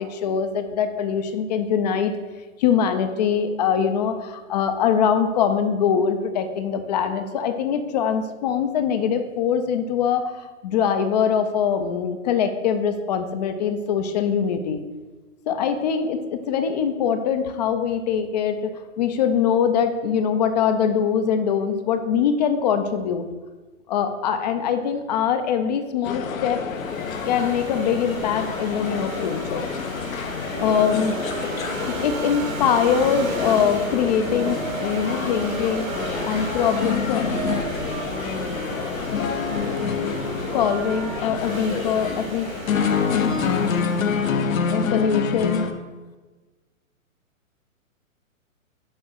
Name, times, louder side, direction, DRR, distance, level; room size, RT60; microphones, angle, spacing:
voice 1, 0.0-2.1 2.6-14.8 15.5-23.2 23.9-26.6 27.3-29.7 30.6-31.2 31.9-35.9 36.2-37.3 40.5-42.5 44.7-45.7, left 7 dB, 30° left, 8 dB, 0.5 m, -23 dB
sound 1, 26.0-45.7, left 6 dB, 70° left, 0.9 m, -27 dB
sound 2, 26.6-44.5, right 3 dB, 70° right, 1.6 m, -36 dB
sound 3, 30.5-41.2, right 8 dB, 40° right, 0.7 m, -38 dB
6.4 x 4.6 x 6.4 m, 1.3 s
hypercardioid pair, 135°, 41 cm